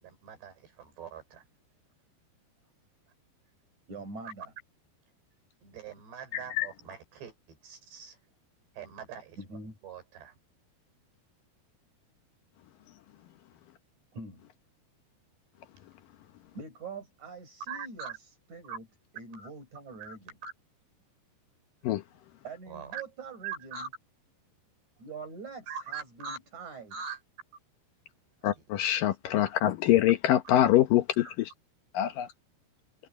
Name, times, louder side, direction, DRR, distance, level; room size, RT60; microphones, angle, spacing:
voice 1, 0.0-1.5 4.3-4.4 5.6-8.2 8.8-9.4 9.8-10.3 17.7-18.1 18.7-18.8 19.4-19.5 20.0-20.2 20.4-20.5 22.7-23.0 23.4-23.9 25.7-26.4 26.9-27.2 28.4-28.5 31.3-31.4, right 7 dB, 80° right, 7.0 m, -42 dB
voice 2, 3.9-4.5 9.4-9.8 14.1-14.5 16.5-18.9 19.1-20.4 22.4-23.9 25.0-26.9, right 4 dB, 45° right, 8.5 m, -44 dB
voice 3, 6.3-6.7 21.8-22.0 28.4-31.5 31.9-32.3, left 13 dB, 70° left, 2.2 m, -25 dB
omnidirectional pair, 4.8 m